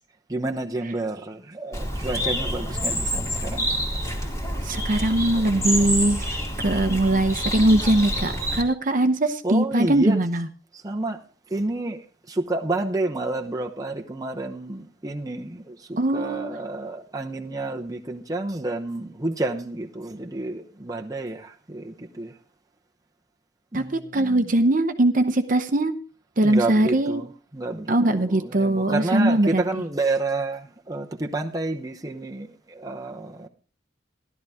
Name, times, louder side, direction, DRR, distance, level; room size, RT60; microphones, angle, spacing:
voice 1, 0.3-3.7 9.4-10.2 10.8-11.2 11.5-12.0 12.3-22.3 23.7-24.5 26.4-33.5, right 2 dB, 20° right, 0.9 m, -29 dB
Bird, 1.7-8.6, equal, 15° left, 2.4 m, -27 dB
voice 2, 4.6-6.4 6.6-10.5 16.0-16.5 23.7-26.0 26.4-27.2 27.9-29.8, right 1 dB, 45° right, 0.8 m, -21 dB
14.0 x 12.0 x 3.5 m
head